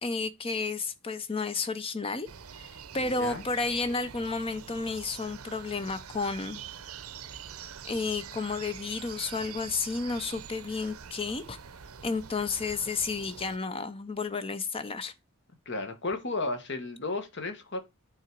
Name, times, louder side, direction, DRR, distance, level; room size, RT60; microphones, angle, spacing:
voice 1, 0.0-2.3 2.6-6.6 7.8-11.6 12.0-15.1, left 4 dB, 25° left, 0.6 m, -32 dB
sound 1, 2.3-13.6, right 7 dB, 80° right, 0.7 m, -45 dB
voice 2, 3.0-3.4 15.6-17.8, left 3 dB, 55° left, 1.4 m, -33 dB
8.9 x 3.8 x 4.6 m
head